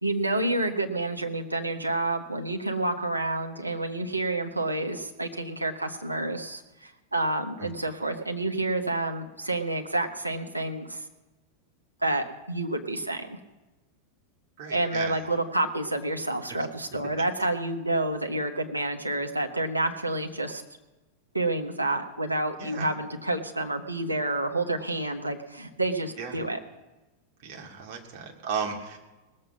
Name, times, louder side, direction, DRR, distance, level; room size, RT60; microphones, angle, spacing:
voice 1, 0.0-11.0 12.0-13.4 14.7-20.6 21.3-26.6, right 2 dB, 85° right, 3 dB, 1.2 m, -29 dB
voice 2, 14.6-15.2 22.6-22.9 26.2-26.4 27.4-29.0, right 5 dB, 45° right, 2 dB, 2.4 m, -35 dB
19.5 x 7.6 x 6.1 m, 1.1 s
figure-of-eight pair, 90°, 0 cm